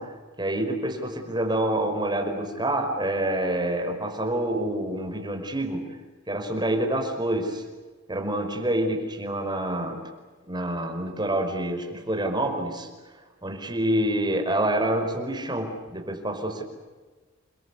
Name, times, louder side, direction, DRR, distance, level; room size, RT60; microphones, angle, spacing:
voice 1, 0.0-6.0 6.3-7.6 8.1-10.1 10.5-12.9 13.4-16.6, right 1 dB, 20° right, 3 dB, 5.2 m, -27 dB
30.0 x 22.5 x 8.5 m, 1.3 s
head